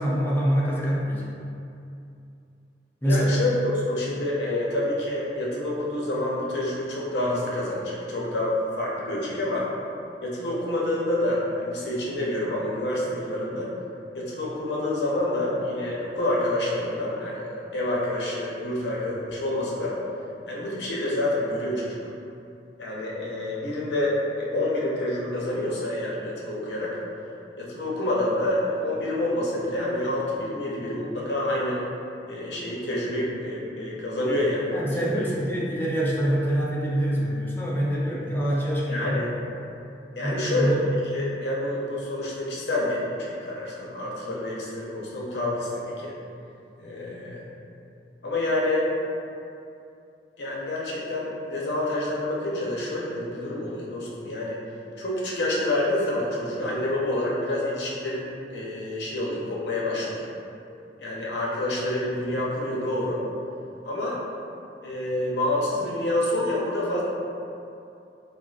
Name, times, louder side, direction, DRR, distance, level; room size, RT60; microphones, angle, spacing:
voice 1, 0.0-1.3 3.0-3.4 34.7-39.2 40.2-40.8, equal, 10° left, -5 dB, 0.4 m, -25 dB
voice 2, 3.0-3.6 3.9-9.7 10.2-13.7 14.1-20.0 20.5-22.0 22.8-27.0 27.6-31.8 32.3-35.2 38.9-39.3 40.2-46.1 46.8-47.5 48.2-48.9 50.4-54.6 55.0-60.3 61.0-63.2 63.8-64.2 64.8-67.0, left 1 dB, 70° left, -5 dB, 0.6 m, -28 dB
3.6 x 2.3 x 2.3 m, 2.6 s
head